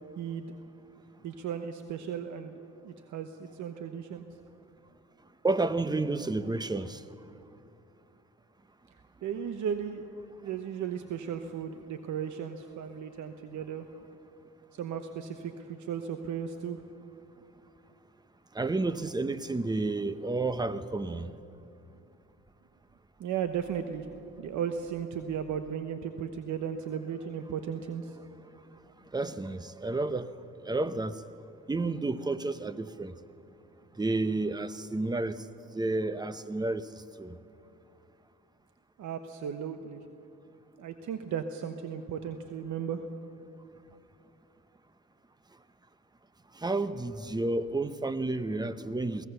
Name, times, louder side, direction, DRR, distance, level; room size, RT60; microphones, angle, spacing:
voice 1, 0.1-0.5 1.2-2.5 2.8-4.3 9.2-13.9 14.7-16.8 23.2-24.1 24.4-28.2 39.0-40.0 40.8-43.1, right 8 dB, 75° right, 1.0 m, -35 dB
voice 2, 5.4-7.0 18.5-21.3 29.1-30.3 30.6-31.2 31.7-33.2 34.0-35.4 35.7-36.9 37.2-37.4 46.5-49.3, right 2 dB, 15° right, 0.8 m, -31 dB
22.5 x 17.0 x 6.8 m
cardioid pair, 90°, 30 cm